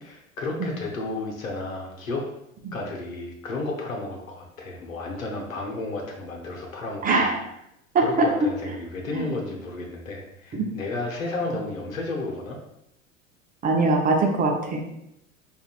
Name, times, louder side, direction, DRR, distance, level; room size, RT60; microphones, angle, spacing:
voice 1, 0.0-2.3 2.7-7.3 8.0-12.6, left 2 dB, 80° left, 0 dB, 0.9 m, -32 dB
voice 2, 7.0-7.4 7.9-8.3 9.1-9.3 10.5-10.7 13.6-14.8, right 3 dB, 20° right, 0 dB, 0.6 m, -22 dB
5.0 x 2.6 x 2.4 m, 0.81 s
figure-of-eight pair, 80°, 40 cm